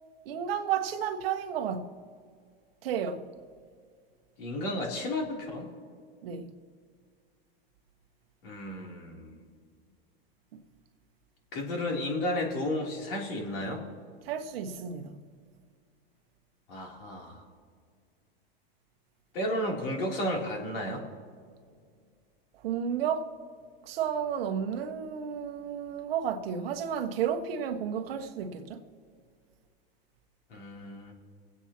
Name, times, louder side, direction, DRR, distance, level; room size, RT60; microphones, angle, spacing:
voice 1, 0.2-1.9 2.8-3.3 6.2-6.5 14.2-15.2 22.6-23.3 23.9-28.8, right 8 dB, 75° right, 1.2 m, -32 dB
voice 2, 4.4-5.7 8.4-9.4 11.5-13.8 16.7-17.4 19.3-21.1 30.5-31.1, left 1 dB, 65° left, 3.2 m, -33 dB
25.5 x 8.6 x 2.9 m
supercardioid pair, 130°, 30 cm